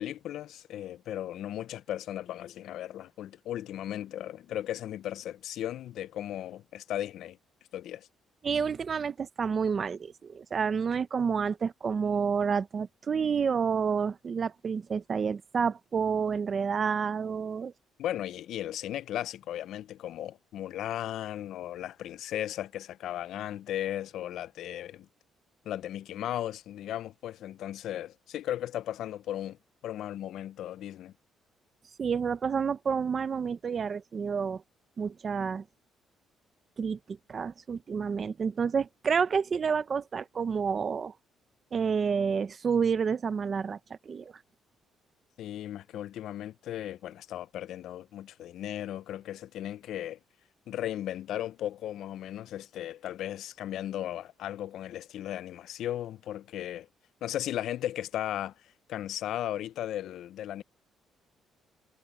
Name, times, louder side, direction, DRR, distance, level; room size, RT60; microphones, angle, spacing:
voice 1, 0.0-7.4 7.7-8.1 18.0-25.1 25.7-29.6 29.8-31.1 45.4-50.2 50.7-56.9 57.2-58.5 58.9-60.6, left 12 dB, 75° left, 0.4 m, -36 dB
voice 2, 8.4-17.7 32.0-34.6 35.0-35.6 36.8-41.1 41.7-43.8 44.1-44.3, right 6 dB, 40° right, 0.8 m, -29 dB
cardioid pair, 120°, 0 cm